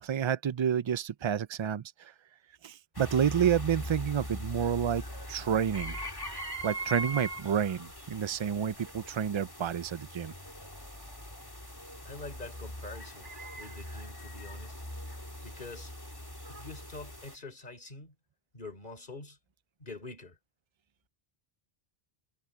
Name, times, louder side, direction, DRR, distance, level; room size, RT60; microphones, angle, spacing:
voice 1, 0.0-2.1 2.6-5.0 5.3-6.0 6.6-10.3, right 8 dB, 50° right, 0.3 m, -29 dB
sound 1, 2.9-17.4, equal, 20° left, 3.3 m, -41 dB
voice 2, 12.0-14.7 15.4-15.9 16.5-18.1 18.5-19.4 19.8-20.4, left 3 dB, 50° left, 3.7 m, -45 dB
omnidirectional pair, 1.1 m